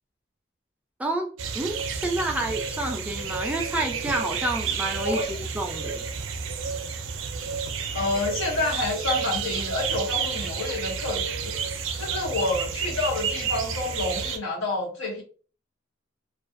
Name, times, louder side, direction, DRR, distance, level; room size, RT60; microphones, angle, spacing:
voice 1, 1.0-6.1, right 1 dB, 5° right, 2 dB, 0.3 m, -29 dB
sound 1, 1.4-14.4, right 6 dB, 75° right, 0.4 m, -31 dB
voice 2, 7.9-11.5 12.0-15.2, left 2 dB, 85° left, -1 dB, 0.9 m, -28 dB
2.4 x 2.2 x 2.5 m, 0.40 s
head